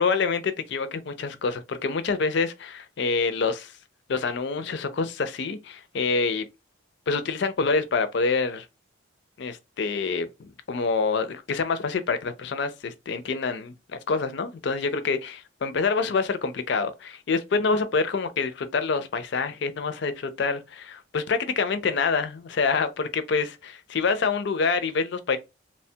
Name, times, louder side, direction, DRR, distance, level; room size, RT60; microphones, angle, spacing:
voice 1, 0.0-3.7 4.1-6.4 7.1-8.7 9.4-25.4, left 4 dB, 55° left, 0.4 m, -26 dB
3.0 x 2.2 x 2.7 m
head